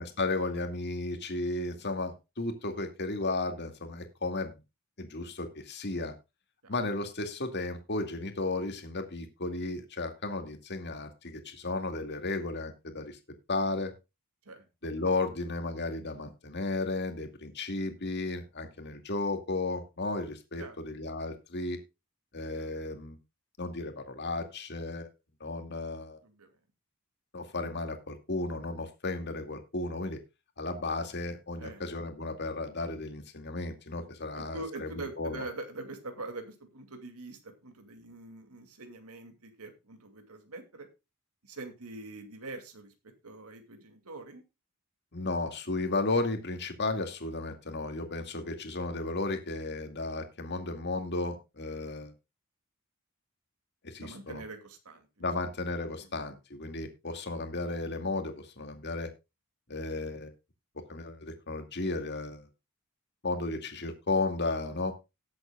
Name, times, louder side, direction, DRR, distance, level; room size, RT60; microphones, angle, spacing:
voice 1, 0.0-4.6 5.0-6.1 6.7-13.2 13.5-13.9 14.8-21.8 22.3-23.2 23.6-25.1 25.4-26.2 27.3-30.2 30.6-35.5 45.1-52.1 53.8-54.4 55.2-59.1 59.7-60.3 60.9-62.5 63.2-64.9, left 2 dB, 50° left, 6 dB, 2.2 m, -34 dB
voice 2, 34.4-40.9 41.4-42.9 43.2-44.4 48.4-48.5 54.0-55.1, right 2 dB, 80° right, 5 dB, 2.6 m, -44 dB
18.5 x 8.1 x 2.4 m, 0.25 s
head